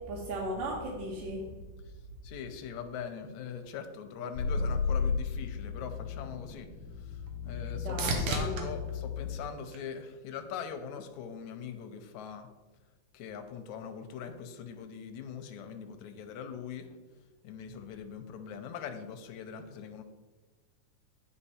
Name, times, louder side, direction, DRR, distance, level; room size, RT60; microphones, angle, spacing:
voice 1, 0.1-1.5 7.8-8.7, right 1 dB, 85° right, -5 dB, 2.8 m, -36 dB
voice 2, 2.2-6.7 7.0-12.5 13.1-16.9 17.4-20.0, left 7 dB, 75° left, 7 dB, 1.9 m, -42 dB
sound 1, 4.3-9.4, left 5 dB, 60° left, 1.0 m, -34 dB
sound 2, 6.4-10.5 11.0-11.6 19.4-19.5, right 3 dB, 65° right, 1.5 m, -38 dB
8.9 x 5.0 x 4.3 m, 1.3 s
omnidirectional pair, 3.6 m